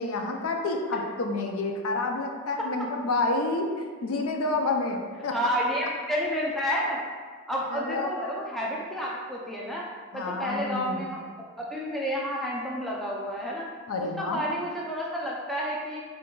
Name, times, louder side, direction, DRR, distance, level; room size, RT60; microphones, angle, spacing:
voice 1, 0.0-5.4 7.7-8.1 10.1-11.1 13.9-14.4, left 3 dB, 70° left, 3 dB, 0.4 m, -29 dB
voice 2, 5.3-7.0 7.5-9.8 10.1-11.2 11.7-13.7 14.2-16.0, equal, ahead, -4 dB, 0.4 m, -30 dB
3.8 x 3.6 x 2.3 m, 1.6 s
head